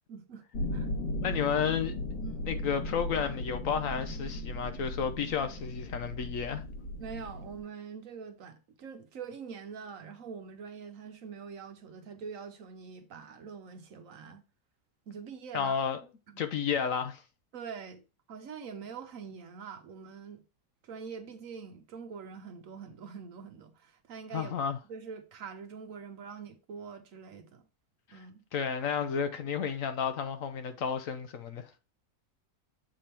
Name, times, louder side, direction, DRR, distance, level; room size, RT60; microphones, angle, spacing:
voice 1, 0.1-0.4 0.7-0.9 2.2-2.5 7.0-14.4 15.1-15.7 16.3-16.4 17.5-18.0 18.3-20.4 20.8-24.6 24.9-27.6 28.1-28.4, right 6 dB, 65° right, 1.1 m, -44 dB
sound 1, 0.5-7.6, left 1 dB, 85° left, 2.3 m, -37 dB
voice 2, 1.2-1.9 2.4-6.6 15.5-16.0 16.4-17.2 24.3-24.8 28.1-28.2 28.5-31.7, left 7 dB, 65° left, 1.0 m, -32 dB
7.5 x 3.5 x 4.3 m
omnidirectional pair, 1.6 m